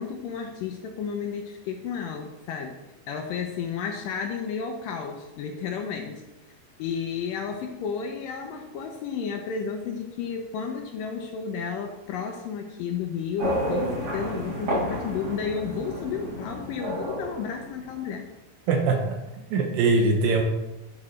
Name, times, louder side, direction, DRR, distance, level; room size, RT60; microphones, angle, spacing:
voice 1, 0.0-2.8 3.1-6.2 6.8-18.3, left 6 dB, 80° left, 3 dB, 2.1 m, -32 dB
sound 1, 13.4-18.2, equal, 50° right, 3.2 m, -31 dB
voice 2, 18.7-19.2 19.5-20.4, right 3 dB, 75° right, 3 dB, 2.4 m, -22 dB
11.5 x 4.9 x 3.2 m, 0.98 s
omnidirectional pair, 4.4 m